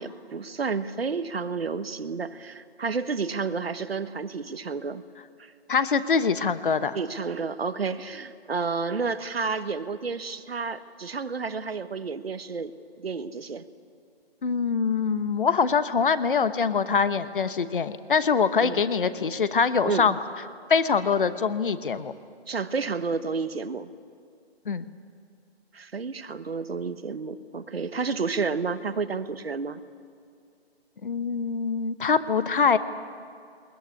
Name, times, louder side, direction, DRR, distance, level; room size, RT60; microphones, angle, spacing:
voice 1, 0.0-5.0 5.4-5.5 6.9-13.6 18.6-18.8 19.8-20.1 22.5-23.9 25.7-29.8, right 4 dB, 65° right, 11 dB, 1.2 m, -31 dB
voice 2, 5.7-7.0 14.4-20.2 20.7-22.1 24.7-24.8 31.0-32.8, left 5 dB, 55° left, 13 dB, 1.1 m, -24 dB
21.0 x 21.0 x 9.8 m, 2.4 s
figure-of-eight pair, 160°, 32 cm